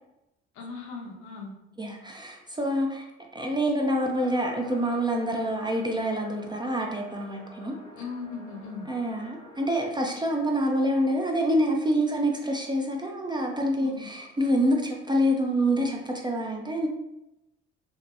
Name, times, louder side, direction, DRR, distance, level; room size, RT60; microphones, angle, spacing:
voice 1, 0.5-1.5 8.0-8.8 13.8-14.0, left 4 dB, 65° left, 0 dB, 0.7 m, -38 dB
voice 2, 1.8-3.0 3.3-7.8 8.9-16.9, equal, 15° right, 1 dB, 0.4 m, -26 dB
sound 1, 4.0-9.7, left 2 dB, 10° left, 0.7 m, -49 dB
2.7 x 2.1 x 2.4 m, 0.90 s
hypercardioid pair, 55°, 31 cm